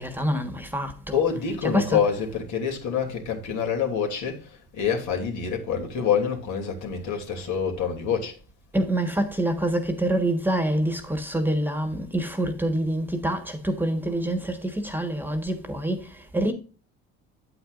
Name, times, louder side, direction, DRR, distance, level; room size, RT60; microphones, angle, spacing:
voice 1, 0.0-2.1 8.7-16.5, right 1 dB, 5° right, 1.4 m, -26 dB
voice 2, 1.1-8.4, left 7 dB, 65° left, 2.9 m, -26 dB
8.7 x 8.6 x 2.5 m
cardioid pair, 100°, 31 cm